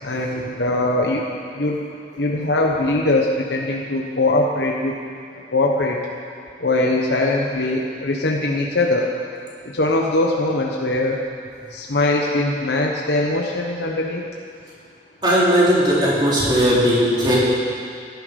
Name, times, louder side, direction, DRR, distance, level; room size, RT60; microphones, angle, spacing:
voice 1, 0.0-1.2 1.5-1.8 2.2-5.0 5.5-6.0 6.6-9.1 9.6-11.3 11.7-14.2, left 2 dB, 70° left, -1 dB, 1.1 m, -21 dB
voice 2, 15.2-17.4, equal, 25° right, -7 dB, 3.6 m, -17 dB
17.0 x 10.5 x 5.3 m, 2.3 s
head